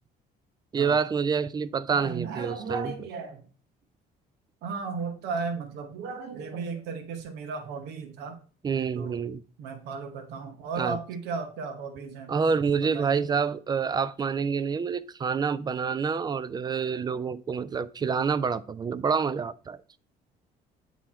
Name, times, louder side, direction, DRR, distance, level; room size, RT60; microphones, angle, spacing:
voice 1, 0.7-2.9 8.6-9.4 10.8-11.0 12.3-19.8, right 6 dB, 25° right, 0.3 m, -27 dB
voice 2, 1.9-3.5 4.6-8.4 9.0-9.2 9.6-12.4 12.8-13.2, right 5 dB, 80° right, 0.9 m, -35 dB
8.2 x 3.0 x 4.2 m
cardioid pair, 110°, 17 cm